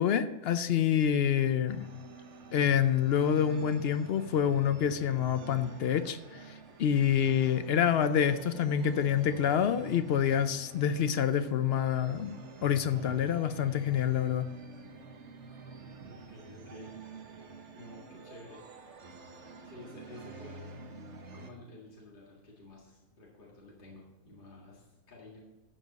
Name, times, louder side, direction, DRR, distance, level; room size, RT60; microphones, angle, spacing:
voice 1, 0.0-2.0 2.5-6.2 6.8-12.3 12.6-14.5, left 8 dB, 60° left, 11 dB, 0.6 m, -27 dB
sound 1, 1.7-21.5, right 4 dB, 55° right, 1.4 m, -49 dB
voice 2, 16.1-16.9 17.7-18.6 19.6-20.8 21.3-25.4, left 2 dB, 40° left, -4 dB, 2.1 m, -51 dB
12.5 x 7.2 x 4.1 m, 1.2 s
omnidirectional pair, 1.5 m